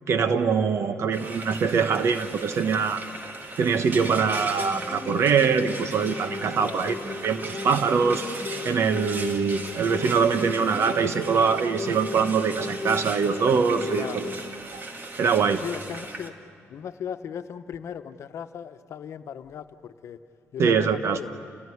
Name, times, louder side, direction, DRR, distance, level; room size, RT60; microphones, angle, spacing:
voice 1, 0.1-3.0 3.6-7.0 7.2-8.3 8.6-14.3 14.7-14.8 15.2-15.6 20.6-21.2, right 6 dB, 65° right, 9 dB, 1.1 m, -23 dB
Frying (food), 1.1-16.3, right 2 dB, 40° right, 2.2 m, -38 dB
sound 1, 4.6-14.6, left 3 dB, 25° left, 2.3 m, -36 dB
voice 2, 6.6-7.1 13.9-14.4 15.6-16.3 16.7-20.2 20.5-21.5, left 8 dB, 75° left, 9 dB, 1.0 m, -37 dB
29.5 x 17.5 x 9.8 m, 2.3 s
cardioid pair, 110°, 5 cm